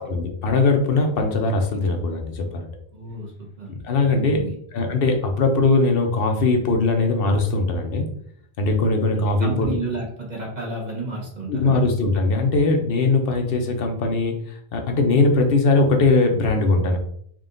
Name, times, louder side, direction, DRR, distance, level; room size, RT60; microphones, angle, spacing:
voice 1, 0.0-2.7 3.8-8.0 8.6-9.8 11.5-17.0, left 3 dB, 65° left, 4 dB, 0.9 m, -20 dB
voice 2, 2.9-3.3 3.6-3.7 4.1-4.5 9.4-11.7, right 2 dB, 45° right, -2 dB, 1.0 m, -31 dB
3.7 x 2.5 x 3.7 m, 0.64 s
omnidirectional pair, 1.1 m